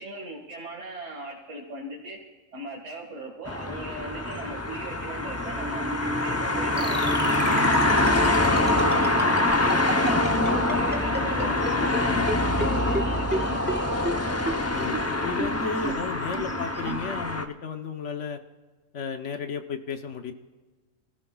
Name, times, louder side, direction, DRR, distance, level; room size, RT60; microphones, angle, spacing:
voice 1, 0.0-2.2 2.5-7.6 8.0-12.2 12.6-14.0, right 2 dB, 65° right, -3 dB, 2.2 m, -39 dB
sound 1, 3.5-17.5, left 2 dB, 15° left, 0.6 m, -25 dB
sound 2, 5.5-11.2, right 2 dB, 85° left, 6.0 m, -37 dB
sound 3, 6.8-12.0 12.3-12.4 12.6-12.7 12.9-13.0 13.3-13.4 13.7-13.8 14.1-14.2 14.5-14.6 14.9-15.0 15.4-15.5 15.8-15.9 16.3-16.4 16.9-17.0, right 1 dB, 10° right, 1.3 m, -29 dB
voice 2, 14.7-18.4 18.9-20.3, left 5 dB, 65° left, 6 dB, 1.2 m, -33 dB
29.0 x 15.0 x 2.3 m, 1.3 s
omnidirectional pair, 1.3 m